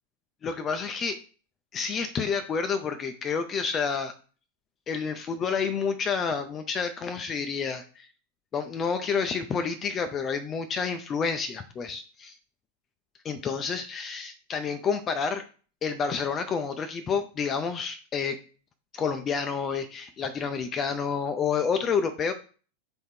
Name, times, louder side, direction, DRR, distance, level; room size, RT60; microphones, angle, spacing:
voice 1, 0.4-1.2 1.7-4.1 4.9-8.1 8.5-12.4 13.2-15.4 15.8-18.4 18.9-22.3, left 5 dB, 25° left, 8 dB, 0.4 m, -29 dB
3.6 x 3.1 x 4.4 m, 0.38 s
figure-of-eight pair, 90°, 0 cm